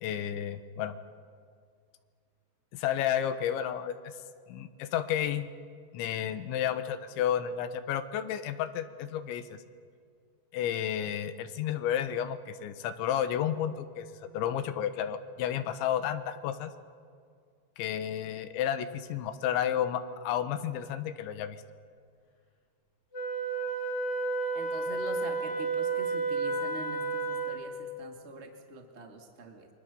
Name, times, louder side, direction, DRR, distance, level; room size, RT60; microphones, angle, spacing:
voice 1, 0.0-1.0 2.7-4.1 4.5-5.5 5.9-9.6 10.5-16.7 17.8-21.6, left 10 dB, 85° left, 11 dB, 3.5 m, -32 dB
Wind instrument woodwind instrument, 23.1-27.8, right 3 dB, 40° left, 4.3 m, -31 dB
voice 2, 24.5-29.7, right 3 dB, 65° right, 3 dB, 0.6 m, -44 dB
27.5 x 24.0 x 7.0 m, 2.2 s
omnidirectional pair, 5.2 m